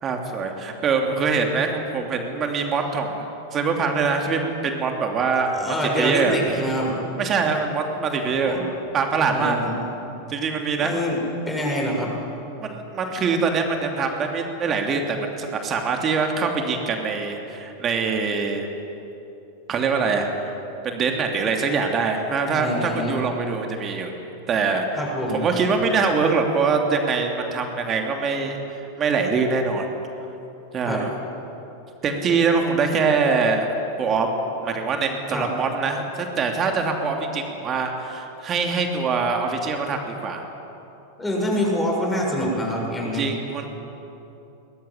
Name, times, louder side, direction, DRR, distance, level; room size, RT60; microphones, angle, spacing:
voice 1, 0.0-6.4 7.2-8.6 8.9-9.6 10.3-10.9 12.6-18.7 19.7-20.5 20.8-24.1 24.5-28.6 29.0-29.9 30.7-31.1 32.0-34.3 34.6-40.4 43.1-43.7, right 4 dB, 25° right, 3 dB, 2.9 m, -24 dB
voice 2, 5.5-6.9 8.4-8.6 9.2-9.8 10.8-12.2 22.5-23.2 24.9-25.4 30.8-31.0 35.3-35.5 41.2-43.3, equal, 10° left, -2 dB, 6.7 m, -25 dB
21.5 x 21.0 x 9.9 m, 3.0 s
figure-of-eight pair, 90°, 0 cm